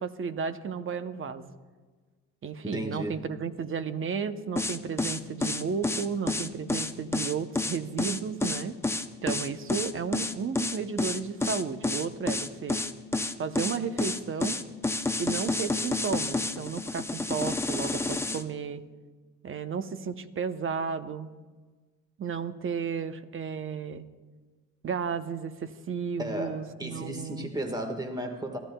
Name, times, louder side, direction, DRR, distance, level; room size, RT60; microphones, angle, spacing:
voice 1, 0.0-1.5 2.4-8.8 9.2-12.8 13.4-14.6 15.2-18.8 19.4-21.3 22.2-24.1 24.8-27.5, right 6 dB, 45° right, 11 dB, 0.8 m, -33 dB
voice 2, 2.6-3.2 26.2-28.6, equal, 15° right, 5 dB, 1.5 m, -34 dB
sound 1, 4.6-18.4, left 2 dB, 10° left, 0.6 m, -29 dB
22.5 x 13.5 x 2.3 m, 1.4 s
cardioid pair, 90°, 30 cm